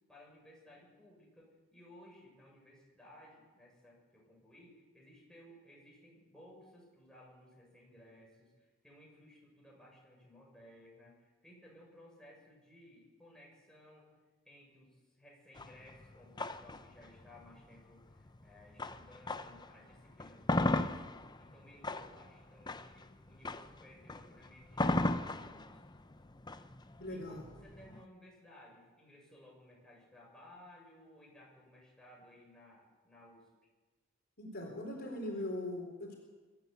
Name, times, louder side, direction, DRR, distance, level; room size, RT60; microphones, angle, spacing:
voice 1, 0.1-25.8 27.1-33.5, left 1 dB, 5° left, -4 dB, 7.1 m, -59 dB
sound 1, 15.6-19.7 20.1-28.0, left 2 dB, 20° left, 0.8 m, -36 dB
voice 2, 27.0-27.4 34.4-36.1, left 1 dB, 50° left, 1 dB, 4.0 m, -40 dB
24.0 x 13.0 x 8.3 m, 1.3 s
head